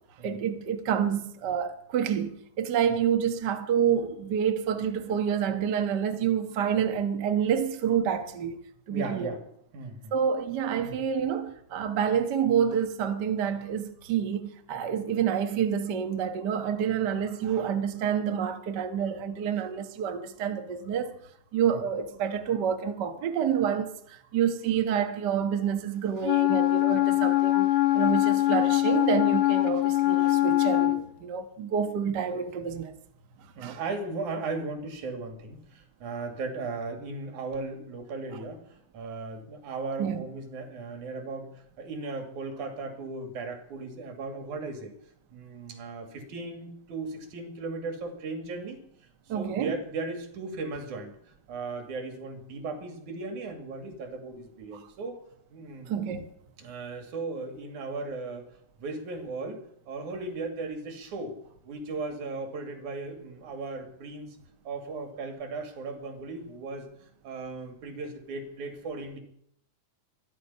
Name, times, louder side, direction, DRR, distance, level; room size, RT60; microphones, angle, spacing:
voice 1, 0.2-8.6 8.9-9.3 10.1-21.1 21.5-32.9 33.6-33.8 40.0-40.2 49.3-49.7 55.9-56.3, right 8 dB, 50° right, 1.3 m, -28 dB
voice 2, 8.9-9.4 9.7-10.1 10.8-11.0 21.7-21.8 33.6-44.9 45.3-48.8 49.3-51.1 51.5-55.2 55.5-55.9 56.6-61.4 61.7-64.4 64.7-69.2, right 3 dB, 75° right, 3.7 m, -37 dB
Wind instrument woodwind instrument, 26.2-31.0, left 17 dB, 75° left, 2.4 m, -23 dB
25.0 x 10.5 x 5.6 m
omnidirectional pair, 3.5 m